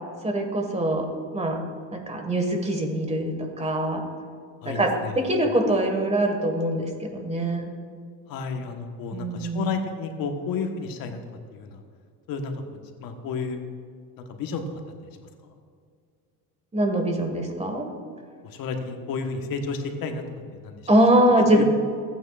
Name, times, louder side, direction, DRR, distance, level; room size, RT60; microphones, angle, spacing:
voice 1, 0.2-1.6 1.9-4.0 4.6-7.7 9.1-9.7 16.7-17.9 20.9-21.6, right 1 dB, 15° right, 4 dB, 1.6 m, -23 dB
voice 2, 4.6-5.3 8.3-11.2 11.5-11.8 12.3-12.5 13.0-13.6 14.2-14.6 15.5-15.6 18.4-20.2 20.6-20.8 21.5-21.6, left 5 dB, 65° left, 5 dB, 1.3 m, -31 dB
15.0 x 9.2 x 2.5 m, 2.2 s
cardioid pair, 105°, 37 cm